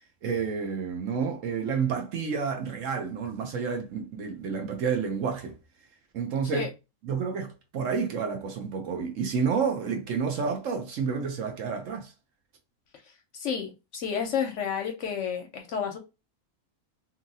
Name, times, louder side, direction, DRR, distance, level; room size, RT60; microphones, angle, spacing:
voice 1, 0.2-5.5 6.1-6.7 7.0-12.1, right 6 dB, 65° right, 1.0 m, -30 dB
voice 2, 13.0-16.0, left 7 dB, 65° left, 0.8 m, -31 dB
2.8 x 2.7 x 2.7 m
omnidirectional pair, 1.5 m